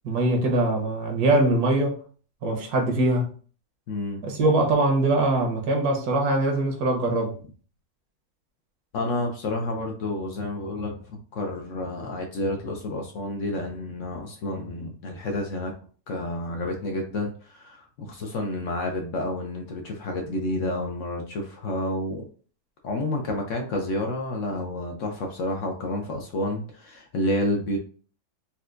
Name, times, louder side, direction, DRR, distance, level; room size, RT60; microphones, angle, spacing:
voice 1, 0.0-1.9 2.4-3.2 4.2-7.4, right 2 dB, 75° right, 2 dB, 1.3 m, -22 dB
voice 2, 3.9-4.2 8.9-15.7 16.1-22.2 22.8-27.8, left 1 dB, 65° left, 2 dB, 0.8 m, -30 dB
4.3 x 2.2 x 2.5 m, 0.41 s
omnidirectional pair, 1.6 m